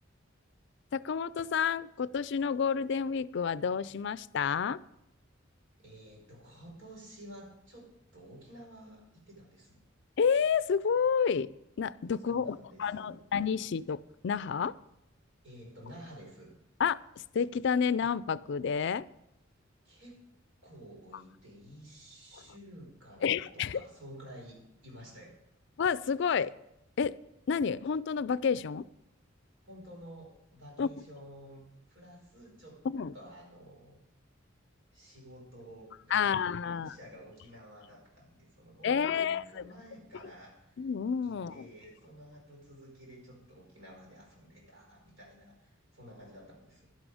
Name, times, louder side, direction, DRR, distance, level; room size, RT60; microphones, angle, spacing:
voice 1, 0.9-4.8 10.2-11.5 11.8-14.7 16.8-17.0 17.3-19.1 23.2-23.8 25.8-26.5 27.0-27.2 27.5-28.9 30.8-30.9 32.9-33.1 36.1-36.9 38.8-39.6 40.8-41.7, left 6 dB, 60° left, 18 dB, 0.4 m, -29 dB
voice 2, 5.8-9.8 12.3-13.2 15.4-16.5 19.8-20.2 20.6-25.4 29.6-32.8 33.1-34.0 34.9-36.4 36.6-40.8 41.2-46.9, equal, 85° right, -1 dB, 5.2 m, -51 dB
11.5 x 11.5 x 4.9 m, 0.86 s
head